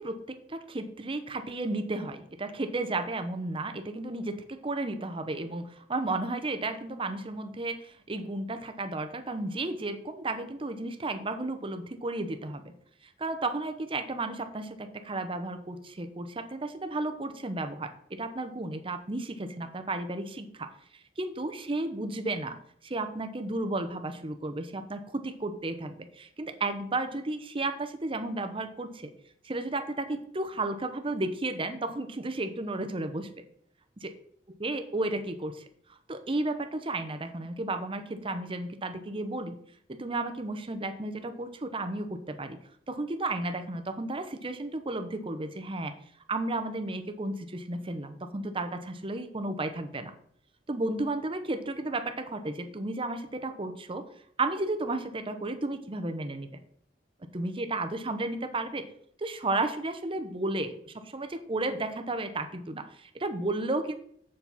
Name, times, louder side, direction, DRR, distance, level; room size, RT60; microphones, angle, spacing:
voice 1, 0.0-12.7 13.2-20.7 21.2-22.6 22.8-29.1 29.4-33.3 34.0-34.1 34.6-35.6 36.1-39.6 39.9-42.6 42.9-45.9 46.3-50.1 50.7-54.0 54.4-56.5 57.3-58.8 59.2-60.7 61.0-64.0, right 2 dB, 30° right, 8 dB, 0.8 m, -33 dB
7.6 x 7.2 x 4.2 m, 0.64 s
head